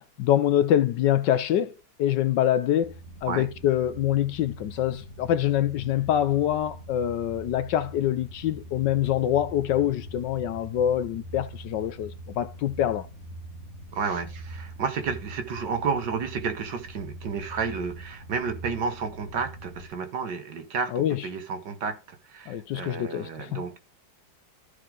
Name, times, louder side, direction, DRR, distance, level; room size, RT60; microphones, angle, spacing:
voice 1, 0.0-1.7 2.0-2.9 3.2-13.1 20.9-21.2 22.5-23.6, left 11 dB, 70° left, 1.2 m, -25 dB
sound 1, 2.8-19.9, right 1 dB, 35° right, 1.9 m, -43 dB
voice 2, 13.9-23.8, right 5 dB, 60° right, 1.9 m, -31 dB
14.0 x 4.9 x 3.7 m
omnidirectional pair, 2.2 m